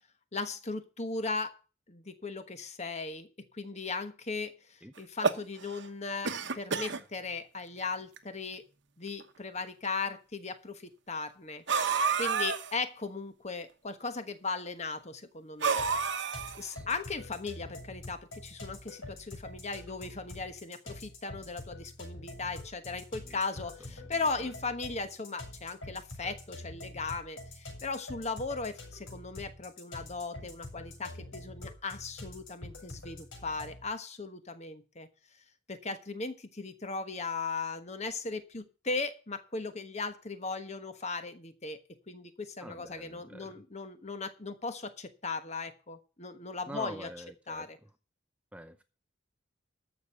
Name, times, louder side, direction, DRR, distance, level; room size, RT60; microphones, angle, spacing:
voice 1, 0.3-1.5 1.9-3.3 3.5-8.6 9.0-11.6 12.2-15.8 16.6-35.1 35.7-41.8 42.1-47.1 47.5-47.8, left 4 dB, 35° left, 10 dB, 1.2 m, -37 dB
sound 1, 5.0-5.9 6.2-7.0 7.8-7.9 8.2-8.3 9.2-9.3 11.7-12.7 15.6-16.7, right 5 dB, 60° right, 1.1 m, -29 dB
sound 2, 15.8-33.9, left 2 dB, 75° left, 6.3 m, -46 dB
voice 2, 42.6-43.6 46.7-47.7 48.5-48.8, right 1 dB, 5° right, 9 dB, 0.6 m, -46 dB
13.5 x 6.4 x 6.7 m, 0.35 s
head